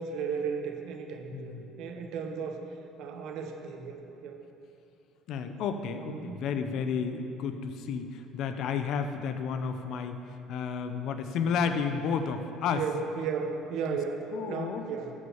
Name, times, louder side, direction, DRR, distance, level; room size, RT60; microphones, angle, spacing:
voice 1, 0.0-2.6 3.0-4.4 6.1-6.5 12.7-15.1, right 6 dB, 70° right, 4 dB, 1.3 m, -35 dB
voice 2, 1.3-1.7 5.3-10.2 10.5-12.8 13.9-14.0 14.3-14.8, left 6 dB, 65° left, 8 dB, 0.9 m, -32 dB
13.0 x 6.7 x 7.2 m, 2.8 s
supercardioid pair, 100°, 0 cm